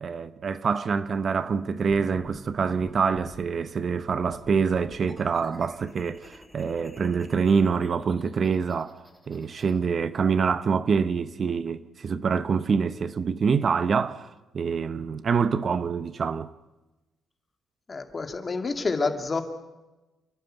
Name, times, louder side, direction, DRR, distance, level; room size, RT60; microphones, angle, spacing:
voice 1, 0.0-9.0 9.3-16.5, right 5 dB, 45° right, 0.8 m, -26 dB
sound 1, 1.9-3.5 4.2-9.7, equal, ahead, 4.9 m, -48 dB
voice 2, 17.9-19.4, left 4 dB, 30° left, 2.6 m, -28 dB
29.5 x 11.5 x 9.1 m
cardioid pair, 90°, 0 cm